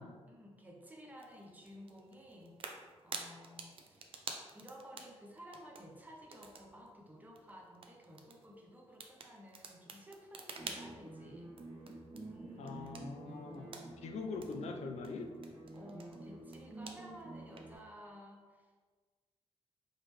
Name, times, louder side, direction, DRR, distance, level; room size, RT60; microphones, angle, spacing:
voice 1, 0.0-2.6 3.0-4.1 4.5-12.0 12.3-12.9 15.7-18.7, equal, 15° right, 0 dB, 0.7 m, -54 dB
sound 1, 1.1-17.8, right 4 dB, 55° right, 0.5 m, -52 dB
sound 2, 10.6-17.8, right 2 dB, 70° right, 1.1 m, -50 dB
voice 2, 12.6-15.3, left 4 dB, 85° left, 4 dB, 0.5 m, -43 dB
4.9 x 3.0 x 3.1 m, 1.5 s
wide cardioid pair, 135°, 11 cm